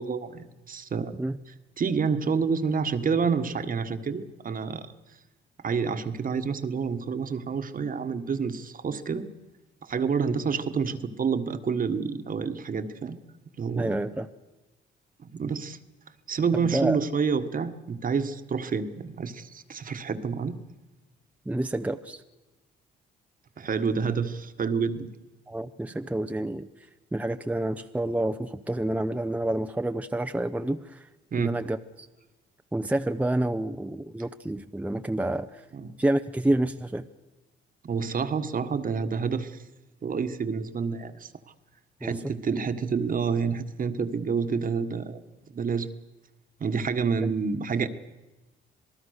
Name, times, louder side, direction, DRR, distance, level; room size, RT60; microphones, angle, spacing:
voice 1, 0.0-1.1 1.8-4.9 5.6-9.3 9.8-13.2 13.6-14.0 15.2-15.8 16.3-20.6 23.6-25.1 31.3-31.5 35.7-35.9 37.8-39.6 40.0-41.3 42.0-45.2 45.5-45.9 46.6-47.9, right 5 dB, 45° right, 9 dB, 1.5 m, -28 dB
voice 2, 13.7-14.3 16.6-17.0 21.5-22.2 25.5-26.7 27.1-31.1 31.4-32.1 32.7-35.6 36.0-37.0 42.0-42.2 47.2-47.3, right 1 dB, 5° right, 7 dB, 0.8 m, -28 dB
27.0 x 19.0 x 6.6 m, 1.1 s
cardioid pair, 90°, 20 cm